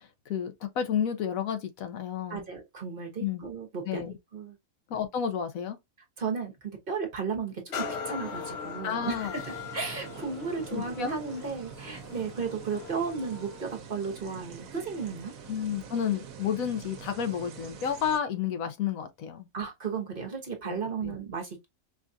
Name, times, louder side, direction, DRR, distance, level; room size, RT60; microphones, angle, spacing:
voice 1, 0.0-2.5 3.2-3.4 3.9-4.2 4.9-5.8 8.8-9.4 10.7-11.1 15.5-19.5 20.6-21.2, left 8 dB, 80° left, 1.1 m, -31 dB
voice 2, 2.3-4.0 4.3-4.6 6.2-15.3 19.5-21.7, right 5 dB, 45° right, 1.1 m, -34 dB
sound 1, 7.7-15.3 15.9-16.0, left 6 dB, 60° left, 0.8 m, -41 dB
sound 2, 9.3-18.2, right 6 dB, 75° right, 1.1 m, -46 dB
4.7 x 2.4 x 2.6 m
omnidirectional pair, 1.5 m